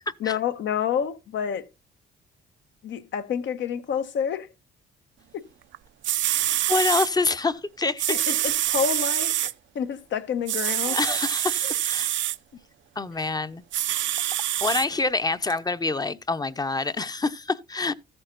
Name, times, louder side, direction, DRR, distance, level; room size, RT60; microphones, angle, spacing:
voice 1, 0.2-1.7 2.8-4.5 5.3-5.4 8.1-11.0, left 8 dB, 70° left, 1.1 m, -28 dB
sound 1, 5.7-5.8 6.0-7.1 8.0-9.5 10.5-12.4 13.7-14.8 15.5-15.6, right 13 dB, 70° right, 0.6 m, -25 dB
voice 2, 6.7-8.1 10.9-12.1 13.0-13.6 14.6-17.9, left 3 dB, 20° left, 0.7 m, -26 dB
14.0 x 8.9 x 2.5 m
cardioid pair, 90°, 20 cm